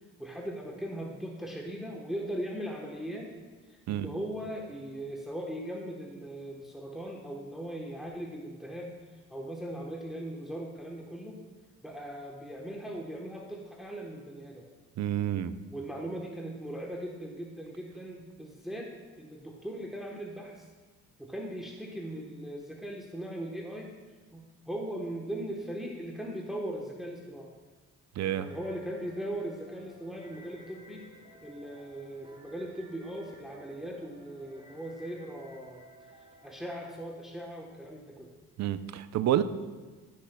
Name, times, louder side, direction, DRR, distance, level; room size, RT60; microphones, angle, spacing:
voice 1, 0.2-3.3 3.7-9.0 9.3-11.4 11.8-14.7 15.7-20.7 21.2-23.9 24.3-27.5 28.3-31.1 31.4-35.8 36.4-38.3, right 1 dB, ahead, -1 dB, 1.0 m, -39 dB
voice 2, 15.0-15.5 28.2-28.5 38.6-39.4, right 11 dB, 65° right, 13 dB, 0.6 m, -29 dB
sound 1, 28.2-36.9, right 1 dB, 20° right, 2.4 m, -55 dB
15.5 x 6.5 x 2.2 m, 1.3 s
cardioid pair, 90°, 30 cm